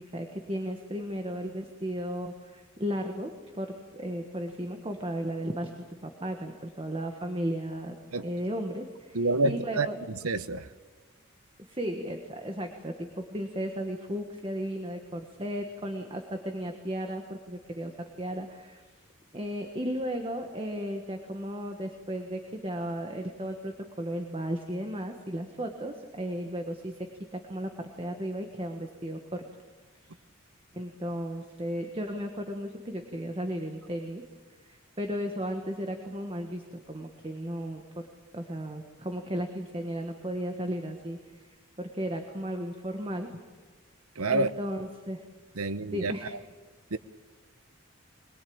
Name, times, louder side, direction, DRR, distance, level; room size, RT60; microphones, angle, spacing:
voice 1, 0.0-5.7 6.0-8.0 8.2-10.0 11.7-18.8 19.3-27.0 27.3-29.4 30.7-34.2 34.6-38.1 38.3-43.3 44.3-45.2 45.8-46.4, equal, 25° right, 4 dB, 1.5 m, -35 dB
voice 2, 9.1-9.9 10.2-10.6 44.2-44.5 45.6-46.1 46.9-47.0, right 2 dB, 90° right, 12 dB, 1.0 m, -27 dB
22.0 x 21.5 x 8.8 m, 1.3 s
head